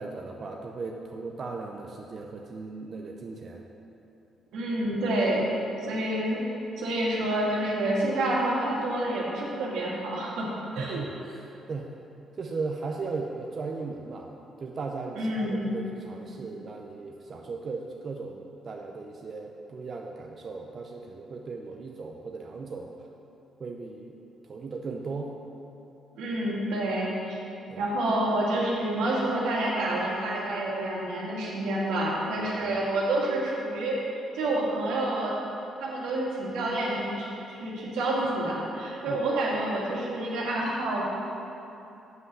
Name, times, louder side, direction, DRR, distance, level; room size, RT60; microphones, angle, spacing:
voice 1, 0.0-3.6 10.7-11.9 12.4-14.3 14.6-22.9 23.6-24.1 24.5-25.3 27.7-27.8 32.4-32.8 39.1-39.2, right 4 dB, 45° right, 1 dB, 0.6 m, -37 dB
voice 2, 4.5-5.5 5.8-6.4 6.8-10.4 10.8-11.0 15.2-15.7 26.2-27.4 27.8-34.0 34.3-35.3 35.8-41.0, right 1 dB, 90° right, -5 dB, 2.0 m, -28 dB
7.8 x 5.5 x 6.6 m, 2.8 s
cardioid pair, 90°, 0 cm